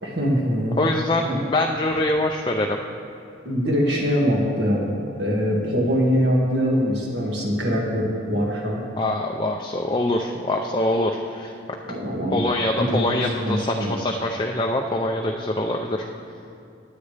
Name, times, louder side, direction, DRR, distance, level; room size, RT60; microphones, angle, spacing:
voice 1, 0.0-0.8 1.2-1.4 3.4-8.8 11.9-12.4 12.8-13.9, equal, 55° right, -2 dB, 2.0 m, -23 dB
voice 2, 0.8-2.8 9.0-11.5 12.3-16.0, left 1 dB, 25° left, 1 dB, 0.5 m, -24 dB
19.5 x 8.4 x 3.4 m, 2.5 s
head